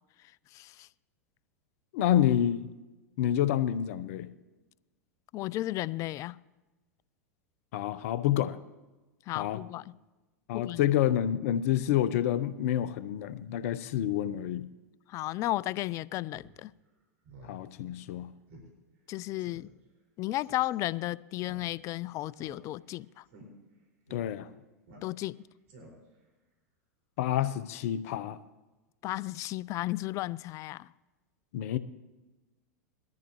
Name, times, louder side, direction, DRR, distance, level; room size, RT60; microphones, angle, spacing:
voice 1, 0.5-0.9 5.3-6.4 9.3-10.0 10.5-10.8 15.1-16.7 19.1-19.7 20.2-23.2 25.0-25.4 29.0-30.9, left 16 dB, 35° left, 0.3 m, -34 dB
voice 2, 1.9-2.7 3.2-4.3 7.7-8.6 9.4-9.6 10.5-14.7 17.4-18.3 24.1-24.5 27.2-28.4 31.5-31.8, left 11 dB, 60° left, 0.8 m, -28 dB
Speech synthesizer, 16.3-16.5 16.9-17.0 17.2-17.6 17.9-18.0 18.5-18.7 19.0-19.1 19.4-19.7 20.4-20.7 21.4-21.9 22.3-22.9 23.3-23.5 24.1-24.2 24.9-25.3 25.7-26.2, right 2 dB, 60° right, 5.3 m, -52 dB
21.5 x 13.5 x 3.1 m
hypercardioid pair, 95°, 9 cm